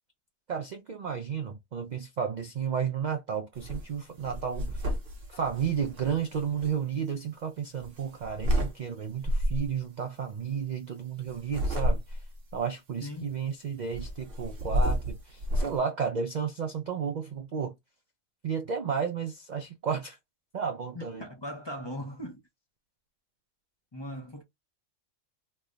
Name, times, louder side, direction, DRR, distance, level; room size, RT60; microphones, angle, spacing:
voice 1, 0.5-4.9 5.3-12.2 12.5-17.7 18.4-20.2 20.5-21.2, right 7 dB, 65° right, 0.4 m, -32 dB
sound 1, 3.6-3.9 4.2-6.7 7.8-8.7 9.2-9.7 11.3-12.4 13.9-15.8, equal, 50° right, 0.9 m, -30 dB
voice 2, 13.0-13.3 20.9-22.4 23.9-24.4, left 1 dB, 30° left, 0.6 m, -39 dB
3.2 x 2.2 x 3.7 m
omnidirectional pair, 1.4 m